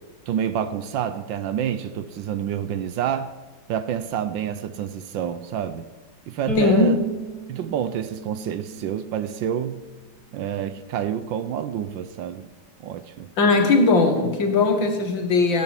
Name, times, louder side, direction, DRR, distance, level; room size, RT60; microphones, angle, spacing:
voice 1, 0.3-3.3 3.7-5.9 6.3-7.0 7.5-9.8 10.3-12.5 12.8-13.3, right 9 dB, 70° right, 1.4 m, -28 dB
Bowed string instrument, 6.5-9.7, equal, 45° right, 3.2 m, -33 dB
voice 2, 6.6-7.0 13.4-15.6, left 3 dB, 65° left, 2.4 m, -19 dB
16.5 x 9.3 x 7.4 m
omnidirectional pair, 2.2 m